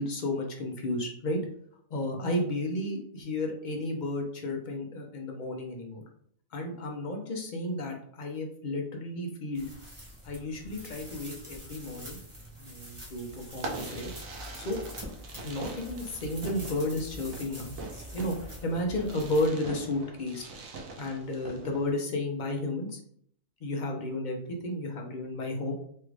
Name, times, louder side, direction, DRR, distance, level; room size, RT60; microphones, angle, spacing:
voice 1, 0.0-1.4 1.9-6.0 6.5-9.7 10.2-12.2 12.6-14.1 14.5-14.8 15.4-17.7 18.1-18.3 18.6-20.4 21.0-23.0 23.6-25.7, left 1 dB, 50° left, 1 dB, 0.6 m, -32 dB
sound 1, 9.5-19.5, equal, 30° right, 0.7 m, -45 dB
Fireworks, 13.5-21.9, right 3 dB, 80° right, 1.0 m, -43 dB
3.2 x 2.4 x 3.2 m, 0.63 s
omnidirectional pair, 1.4 m